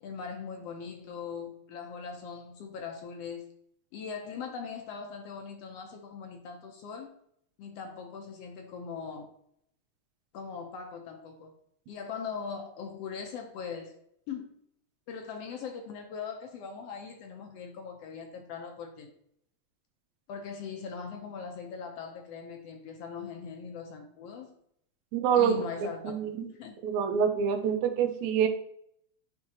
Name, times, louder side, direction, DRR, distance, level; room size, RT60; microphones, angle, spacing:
voice 1, 0.0-3.5 3.9-7.1 7.6-9.3 10.3-11.5 11.9-14.0 14.3-14.5 15.1-19.1 20.3-24.5 25.3-26.1 26.4-26.8, left 6 dB, 70° left, 1.6 m, -40 dB
voice 2, 25.1-25.6 26.0-26.5 26.8-28.5, right 8 dB, 90° right, 2.0 m, -26 dB
9.5 x 3.5 x 2.8 m
omnidirectional pair, 3.3 m